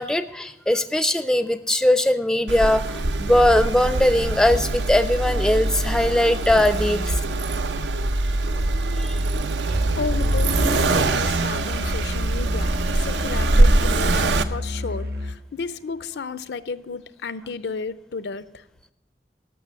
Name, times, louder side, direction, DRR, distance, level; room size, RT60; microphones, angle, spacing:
voice 1, 0.0-7.2 9.0-9.2, left 1 dB, 5° left, 0.4 m, -20 dB
Accelerating revving vroom, 2.5-14.4, right 2 dB, 90° right, 0.7 m, -23 dB
Musical instrument, 9.7-15.4, left 1 dB, 60° right, 1.0 m, -31 dB
voice 2, 10.0-18.6, left 4 dB, 80° left, 0.5 m, -33 dB
12.5 x 6.1 x 8.2 m
head